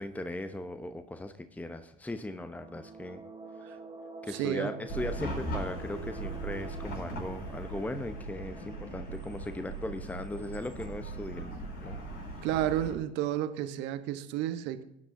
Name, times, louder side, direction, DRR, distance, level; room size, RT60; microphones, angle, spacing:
voice 1, 0.0-3.2 3.7-3.8 4.2-11.5 11.8-12.0, left 1 dB, 5° left, 9 dB, 0.9 m, -38 dB
sound 1, 2.2-10.8, right 3 dB, 20° right, 2.5 m, -48 dB
voice 2, 4.3-4.7 12.4-14.8, right 12 dB, 60° right, 10 dB, 1.2 m, -31 dB
Chatter / Car passing by / Traffic noise roadway noise, 4.9-13.0, right 2 dB, 50° left, 5.8 m, -39 dB
21.0 x 10.5 x 2.7 m, 0.81 s
figure-of-eight pair, 60°, 21 cm